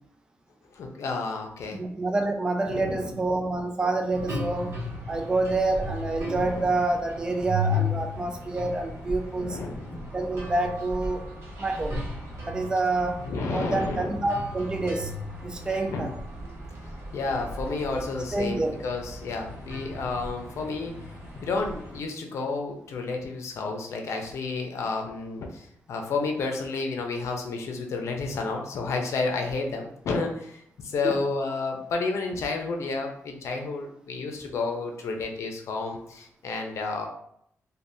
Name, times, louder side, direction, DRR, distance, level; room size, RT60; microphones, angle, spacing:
voice 1, 0.7-1.8 2.7-3.2 6.3-6.7 9.4-10.0 13.2-14.2 15.8-16.1 17.1-20.9 21.4-37.1, left 3 dB, 75° left, 3 dB, 0.5 m, -31 dB
voice 2, 1.8-4.8 5.1-9.6 10.1-11.2 11.6-12.0 12.5-13.2 13.5-15.1 15.4-16.1 18.3-18.7 31.0-31.2, right 2 dB, 15° right, 4 dB, 0.3 m, -27 dB
sound 1, 4.1-22.0, left 1 dB, 60° right, 0.8 m, -36 dB
3.3 x 2.2 x 2.7 m, 0.71 s
wide cardioid pair, 130°, 5 cm